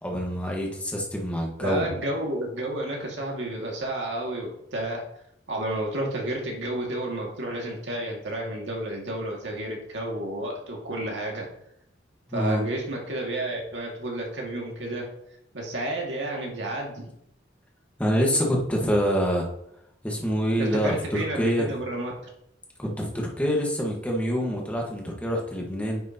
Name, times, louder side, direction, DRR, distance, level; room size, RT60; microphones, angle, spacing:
voice 1, 0.0-1.8 12.3-12.7 18.0-19.5 20.0-21.7 22.8-26.0, equal, 10° left, -1 dB, 1.5 m, -26 dB
voice 2, 1.6-5.0 5.5-11.5 12.3-15.1 15.5-17.1 20.6-22.1, right 1 dB, 85° right, -1 dB, 2.1 m, -31 dB
9.7 x 6.1 x 2.9 m, 0.75 s
head